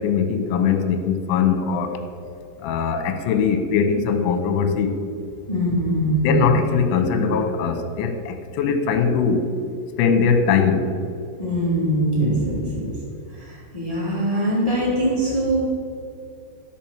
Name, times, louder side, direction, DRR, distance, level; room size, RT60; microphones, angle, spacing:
voice 1, 0.0-2.0 2.6-4.9 6.2-9.5 10.0-10.9, left 6 dB, 80° left, 6 dB, 3.4 m, -21 dB
voice 2, 5.5-6.3 8.6-8.7 11.4-12.9 13.4-15.6, right 1 dB, 40° left, -6 dB, 0.4 m, -22 dB
13.0 x 6.2 x 7.3 m, 2.5 s
omnidirectional pair, 5.6 m